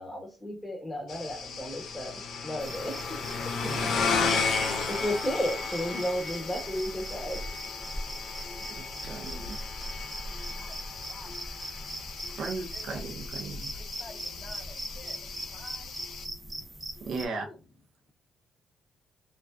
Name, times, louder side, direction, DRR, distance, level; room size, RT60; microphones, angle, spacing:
voice 1, 0.0-3.8 4.2-4.3 4.6-7.4, equal, 5° left, 1.2 m, -34 dB
sound 1, 1.1-16.2, left 4 dB, 70° left, 0.5 m, -34 dB
sound 2, 2.6-17.3, right 1 dB, 20° right, 0.6 m, -42 dB
voice 2, 3.6-4.0 8.8-9.6 12.3-13.7 17.1-17.5, right 4 dB, 65° right, 0.5 m, -37 dB
voice 3, 8.4-13.4 14.0-17.6, left 2 dB, 20° left, 0.6 m, -52 dB
2.3 x 2.2 x 2.3 m
cardioid pair, 90°, 0 cm